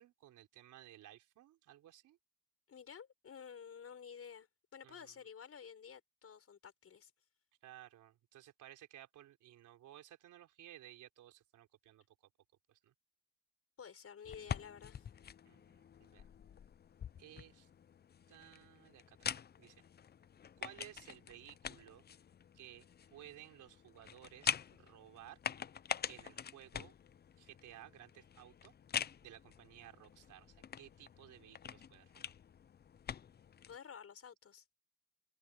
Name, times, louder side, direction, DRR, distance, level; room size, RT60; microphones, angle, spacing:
voice 1, 0.0-2.2 4.8-5.1 7.6-12.0 12.7-12.9 15.5-16.3 17.2-17.7 18.3-19.8 20.6-22.0 22.5-22.9 23.1-25.4 26.1-26.9 27.4-28.7 29.2-32.3, right 13 dB, 80° right, 4.2 m, -57 dB
voice 2, 2.7-7.1 13.8-15.1 33.6-34.6, left 7 dB, 50° left, 6.1 m, -52 dB
sound 1, 14.3-33.8, left 8 dB, 35° left, 0.5 m, -45 dB
cardioid pair, 90°, 30 cm